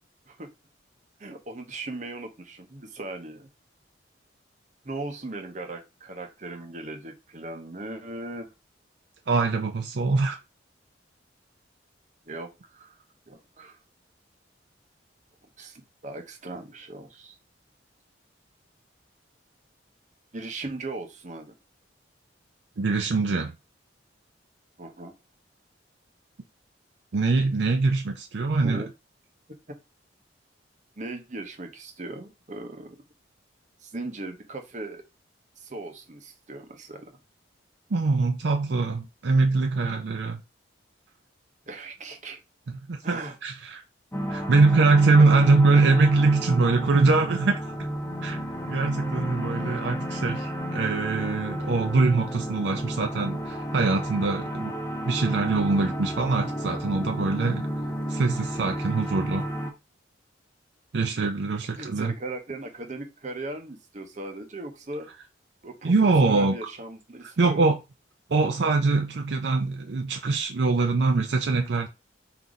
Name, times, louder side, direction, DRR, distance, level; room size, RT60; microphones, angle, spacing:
voice 1, 1.2-3.5 4.8-8.5 12.3-13.0 13.3-13.8 15.6-17.3 20.3-21.6 24.8-25.1 28.6-28.9 31.0-33.0 33.8-35.0 35.6-37.2 41.7-42.4 43.0-43.4 45.2-45.7 61.8-65.1 65.6-65.9 66.2-67.6, right 2 dB, 40° right, 0.8 m, -38 dB
voice 2, 9.3-10.4 22.8-23.5 27.1-28.8 37.9-40.4 42.7-43.8 44.3-47.6 48.2-48.4 48.7-54.7 55.0-57.7 58.1-59.5 60.9-62.1 65.8-66.6 67.2-67.8 68.3-71.9, right 3 dB, 65° right, 0.5 m, -23 dB
sound 1, 44.1-59.7, equal, 15° left, 0.7 m, -32 dB
3.9 x 2.7 x 4.8 m
head